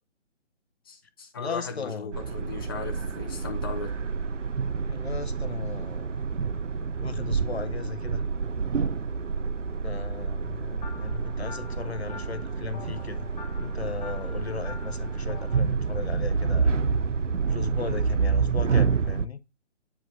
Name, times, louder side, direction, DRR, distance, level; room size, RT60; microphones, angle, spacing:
voice 1, 0.9-3.9, left 4 dB, 20° left, 0.6 m, -37 dB
voice 2, 1.4-2.2 4.9-6.2 7.0-8.3 9.8-13.3 13.6-16.8 17.5-19.4, left 6 dB, 60° left, 0.7 m, -37 dB
sound 1, 2.1-19.3, right 5 dB, 85° right, 0.6 m, -28 dB
sound 2, 10.8-15.6, left 4 dB, 35° left, 1.2 m, -46 dB
8.4 x 4.8 x 2.7 m
figure-of-eight pair, 140°, 36 cm